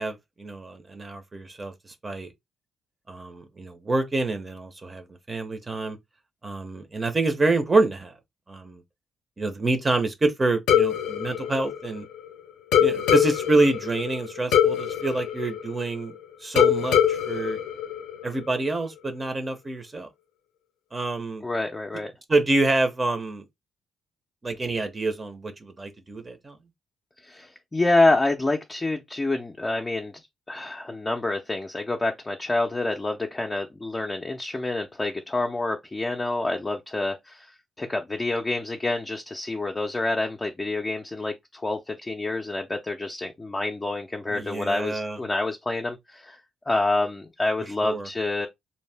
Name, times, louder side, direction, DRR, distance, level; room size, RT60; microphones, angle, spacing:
voice 1, 0.0-2.3 3.1-6.0 6.4-8.1 8.5-8.8 9.4-12.1 12.8-16.1 16.4-17.6 18.2-20.1 20.9-21.4 22.3-23.4 24.4-26.6 44.3-45.2 47.8-48.1, right 2 dB, 25° right, 0.6 m, -27 dB
sound 1, 10.7-12.3 12.7-16.1 16.6-18.5, left 9 dB, 90° left, 0.5 m, -23 dB
voice 2, 21.4-22.1 27.2-30.1 30.5-46.4 46.7-48.5, left 2 dB, 20° left, 0.5 m, -27 dB
2.7 x 2.1 x 3.3 m
cardioid pair, 90°, 0 cm